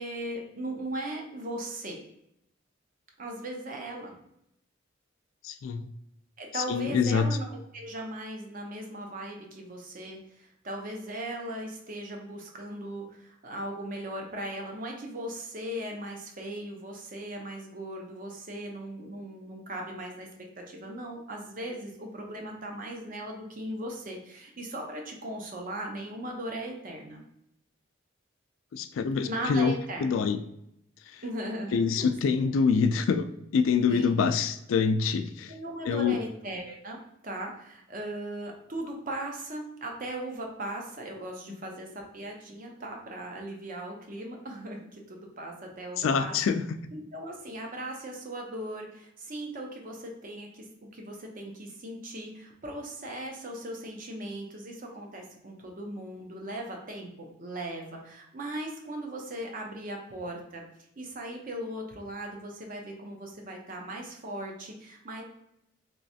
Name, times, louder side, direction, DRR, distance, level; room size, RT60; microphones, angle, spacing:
voice 1, 0.0-2.0 3.2-4.2 6.4-20.3 20.6-27.2 29.2-30.1 31.2-32.1 33.9-34.1 35.5-37.0 37.2-46.4 46.9-60.6 61.0-65.2, right 1 dB, 45° right, 1 dB, 0.7 m, -38 dB
voice 2, 5.4-5.8 6.5-7.3 28.7-29.7 30.0-30.4 31.1-31.2 31.7-33.3 33.5-35.5 35.9-36.2 46.0-46.8, left 5 dB, 85° left, 11 dB, 0.3 m, -25 dB
3.1 x 3.1 x 2.7 m, 0.78 s
head